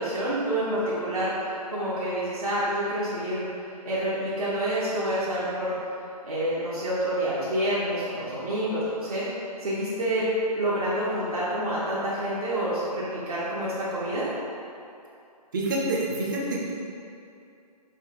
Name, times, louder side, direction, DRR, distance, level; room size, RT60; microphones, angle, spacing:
voice 1, 0.0-3.5 3.8-5.8 6.2-9.3 9.6-10.3 10.5-14.3, right 1 dB, 65° right, -9 dB, 0.9 m, -28 dB
voice 2, 15.5-16.7, right 1 dB, 30° right, -4 dB, 0.6 m, -27 dB
5.0 x 2.3 x 3.8 m, 2.6 s
figure-of-eight pair, 140°, 21 cm